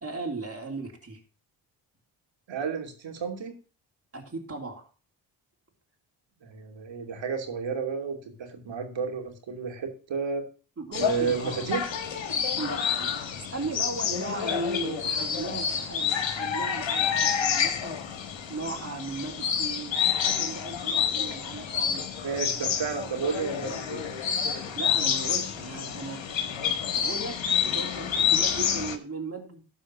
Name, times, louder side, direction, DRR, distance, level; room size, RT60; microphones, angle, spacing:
voice 1, 0.0-1.2 4.1-4.9 10.8-11.6 12.6-18.0 18.5-22.1 24.7-26.2 26.5-29.6, right 3 dB, 30° right, 0 dB, 3.1 m, -37 dB
voice 2, 2.5-3.6 6.4-10.4 10.9-11.9 22.2-24.1, right 5 dB, 70° right, 4 dB, 2.9 m, -32 dB
sound 1, 10.9-29.0, left 8 dB, 70° left, 1.8 m, -28 dB
13.0 x 4.9 x 6.1 m, 0.37 s
supercardioid pair, 55°, 46 cm